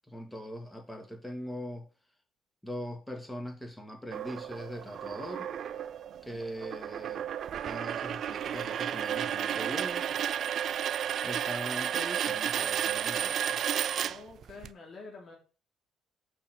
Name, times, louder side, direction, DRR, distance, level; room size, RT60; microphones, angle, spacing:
voice 1, 0.1-1.9 2.6-5.5 6.2-7.3 7.6-10.1 11.2-13.6, equal, 10° left, 2.2 m, -41 dB
sound 1, 4.1-14.7, right 9 dB, 60° right, 0.4 m, -32 dB
voice 2, 14.0-15.3, left 4 dB, 50° left, 3.2 m, -47 dB
5.9 x 5.7 x 6.3 m
supercardioid pair, 75°, 0 cm